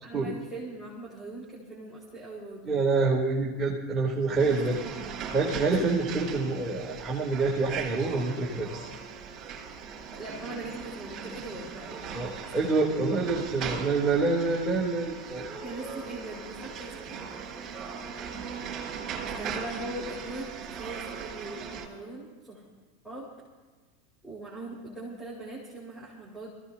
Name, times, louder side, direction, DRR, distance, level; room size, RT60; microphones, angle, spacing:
voice 1, 0.0-2.7 4.4-5.1 5.6-6.1 10.1-12.3 15.6-17.3 19.2-22.6 23.0-23.3 24.2-26.5, right 2 dB, 5° left, -6 dB, 4.7 m, -41 dB
voice 2, 2.7-4.8 5.3-8.9 12.1-15.5, right 3 dB, 20° right, -5 dB, 3.2 m, -27 dB
sound 1, 4.4-21.9, right 6 dB, 35° right, 4.9 m, -39 dB
25.0 x 16.5 x 2.8 m, 1.4 s
hypercardioid pair, 100°, 0 cm